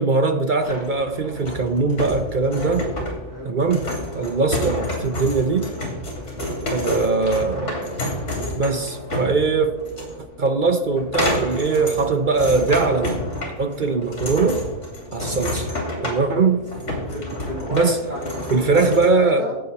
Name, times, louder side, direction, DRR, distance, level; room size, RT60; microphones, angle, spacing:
voice 1, 0.0-2.9 3.4-3.9 4.1-5.7 6.7-8.0 8.6-9.7 10.4-13.3 13.6-14.6 15.1-15.7 16.0-16.7 17.7-18.0 18.5-19.5, right 4 dB, 50° right, 7 dB, 0.6 m, -21 dB
sound 1, 0.6-19.1, left 1 dB, 45° left, 3.2 m, -29 dB
voice 2, 17.1-19.6, equal, 25° right, -3 dB, 2.7 m, -31 dB
14.5 x 8.1 x 4.1 m, 1.1 s
omnidirectional pair, 1.7 m